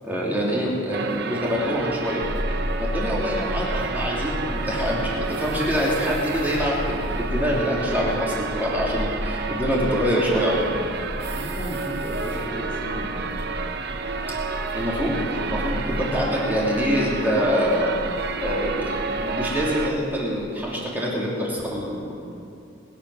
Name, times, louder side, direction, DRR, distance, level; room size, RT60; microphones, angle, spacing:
voice 1, 0.0-2.2 2.8-10.8 14.7-15.2 15.5-17.9 18.4-22.1, equal, 10° right, -5 dB, 2.8 m, -25 dB
sound 1, 0.9-19.9, right 4 dB, 55° right, 0.9 m, -31 dB
sound 2, 2.2-19.9, equal, 15° left, 1.2 m, -33 dB
voice 2, 11.2-13.3, equal, 40° left, -4 dB, 2.3 m, -34 dB
21.0 x 8.9 x 6.2 m, 2.6 s
head